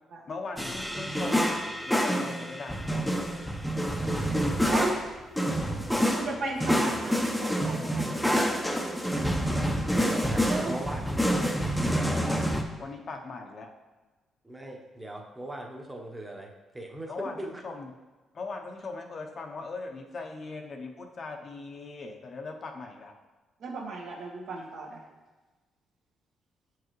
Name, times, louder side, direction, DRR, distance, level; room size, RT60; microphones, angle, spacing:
voice 1, 0.3-1.6 1.9-3.2 9.1-9.2 12.8-13.7 17.1-17.9 18.3-23.1, left 3 dB, 50° left, 3 dB, 0.7 m, -39 dB
sound 1, 0.6-12.6, equal, 5° left, 0.6 m, -27 dB
voice 2, 5.7-8.6 8.9-9.0 10.5-10.7 23.6-25.0, right 3 dB, 70° right, -1 dB, 1.3 m, -36 dB
voice 3, 10.0-11.6 11.8-12.4 14.4-17.6, right 1 dB, 15° right, 1 dB, 1.0 m, -39 dB
7.5 x 4.7 x 3.1 m, 1.2 s
cardioid pair, 90°, 0 cm